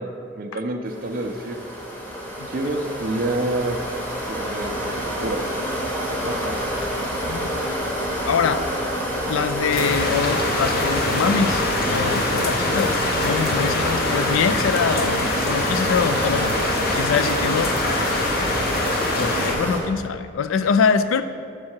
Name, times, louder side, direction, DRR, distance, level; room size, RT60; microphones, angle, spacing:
voice 1, 0.0-1.6 2.5-3.8 4.3-4.9 5.2-5.4 6.3-6.6, right 2 dB, 45° right, 4 dB, 0.4 m, -27 dB
sound 1, 0.9-19.8, equal, 10° left, 0.9 m, -27 dB
voice 2, 8.2-8.6 9.3-16.5 16.9-17.7 19.2-21.2, left 6 dB, 75° left, 11 dB, 0.3 m, -24 dB
sound 2, 9.7-19.5, left 2 dB, 45° left, 0.7 m, -24 dB
7.4 x 4.7 x 4.4 m, 2.3 s
head